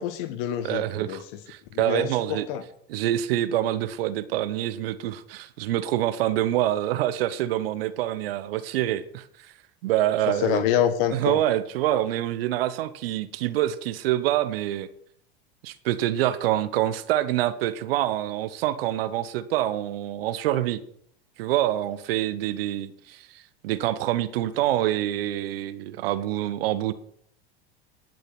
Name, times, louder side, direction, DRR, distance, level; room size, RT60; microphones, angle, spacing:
voice 1, 0.0-1.2 1.7-2.6 10.3-11.4, left 10 dB, 60° left, 1.3 m, -26 dB
voice 2, 0.6-2.5 2.9-9.2 9.8-10.7 11.1-14.9 15.6-20.8 21.4-23.3 23.6-26.9, right 13 dB, 70° right, 1.0 m, -26 dB
19.0 x 6.7 x 6.0 m
hypercardioid pair, 95°, 30 cm